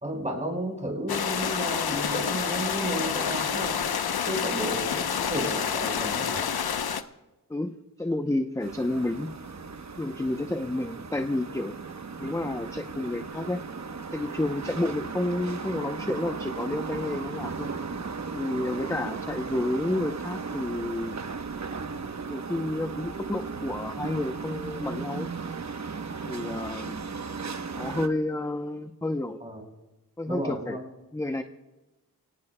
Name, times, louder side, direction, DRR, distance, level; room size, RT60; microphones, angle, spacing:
voice 1, 0.0-3.8 4.2-6.4 19.0-19.2 29.4-29.6 30.3-30.8, right 1 dB, 20° right, 0 dB, 4.4 m, -33 dB
sound 1, 1.1-7.0, left 7 dB, 85° left, 0.8 m, -28 dB
voice 2, 7.5-9.3 10.0-11.8 12.2-13.6 14.1-17.7 18.3-21.2 22.3-25.3 26.2-27.1 27.8-29.4 30.2-30.8 31.1-31.4, left 1 dB, 10° left, 7 dB, 0.6 m, -30 dB
sound 2, 8.6-28.1, right 4 dB, 50° right, 1.0 m, -36 dB
29.0 x 18.0 x 2.2 m, 1.1 s
wide cardioid pair, 85°, 37 cm